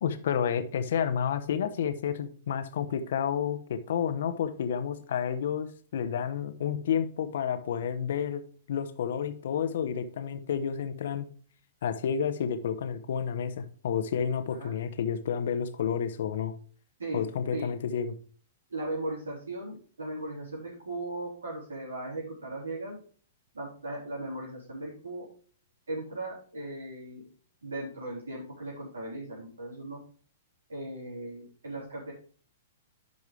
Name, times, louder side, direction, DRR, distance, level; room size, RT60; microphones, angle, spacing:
voice 1, 0.0-8.4 8.7-11.3 11.8-16.5 17.1-18.1, left 8 dB, 65° left, 10 dB, 0.9 m, -30 dB
voice 2, 18.7-23.0 23.5-25.3 25.9-27.2 27.6-30.0 30.7-32.1, right 2 dB, 80° right, -5 dB, 3.8 m, -37 dB
11.0 x 5.3 x 3.3 m, 0.43 s
hypercardioid pair, 115°, 0 cm